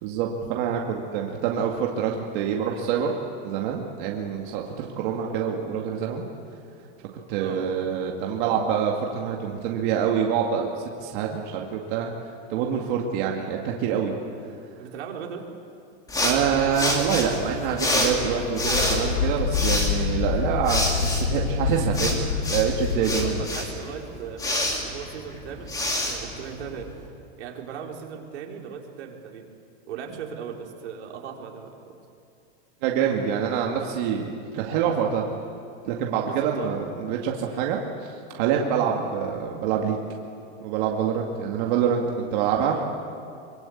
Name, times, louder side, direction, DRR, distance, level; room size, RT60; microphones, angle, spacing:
voice 1, 0.0-3.1 3.4-6.2 7.3-10.7 11.0-12.1 12.5-14.1 16.2-23.4 32.8-35.3 35.8-40.0 40.6-42.8, right 7 dB, 45° right, 0 dB, 2.3 m, -26 dB
voice 2, 14.8-15.4 22.9-26.9 27.4-29.5 29.9-32.0 36.2-36.7 42.6-42.9, right 7 dB, 85° right, 0 dB, 4.3 m, -38 dB
sound 1, 16.1-27.0, left 1 dB, 10° left, 2.9 m, -28 dB
sound 2, 16.4-23.5, left 7 dB, 65° left, 1.8 m, -28 dB
24.0 x 23.0 x 8.6 m, 2.5 s
supercardioid pair, 165°, 33 cm